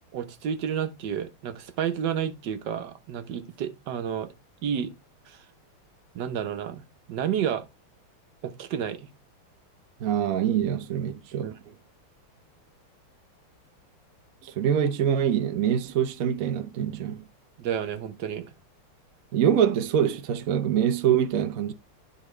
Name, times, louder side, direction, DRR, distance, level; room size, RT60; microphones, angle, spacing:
voice 1, 0.1-4.3 4.6-4.9 5.3-5.4 6.1-7.6 8.4-9.1 11.4-11.7 17.6-18.5, right 8 dB, 60° right, 1.4 m, -31 dB
voice 2, 10.0-11.5 14.4-17.2 19.3-21.7, right 9 dB, 75° right, 0.7 m, -24 dB
12.0 x 4.1 x 3.2 m
omnidirectional pair, 2.4 m